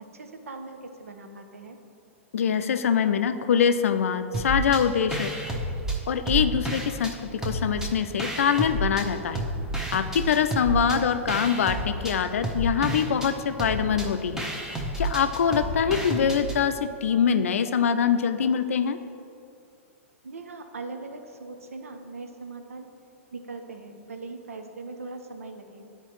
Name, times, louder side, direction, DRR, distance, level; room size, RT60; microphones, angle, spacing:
voice 1, 0.0-1.8 10.9-11.5 15.9-16.2 20.2-22.9 23.3-25.9, right 3 dB, 85° right, 6 dB, 0.7 m, -40 dB
voice 2, 2.3-5.3 6.1-9.4 9.9-14.4 15.0-19.0, left 7 dB, 75° left, 10 dB, 0.4 m, -24 dB
sound 1, 4.3-4.8 5.1-7.1 7.4-9.0 9.3-16.6, right 1 dB, 5° right, 0.9 m, -30 dB
9.8 x 4.4 x 3.1 m, 2.5 s
hypercardioid pair, 115°, 7 cm